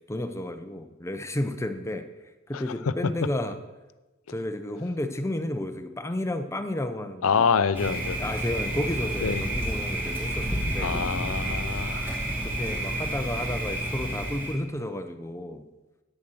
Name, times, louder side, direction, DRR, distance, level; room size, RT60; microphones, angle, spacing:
voice 1, 0.1-2.0 2.5-3.6 4.3-7.5 8.2-11.0 12.2-15.6, left 1 dB, 15° left, 8 dB, 0.7 m, -32 dB
voice 2, 7.2-8.3 9.2-9.4 10.8-12.1, left 6 dB, 85° left, 14 dB, 0.5 m, -26 dB
Thunder, 7.7-14.5, right 1 dB, 10° right, 2.4 m, -30 dB
9.0 x 6.9 x 6.3 m, 1.1 s
head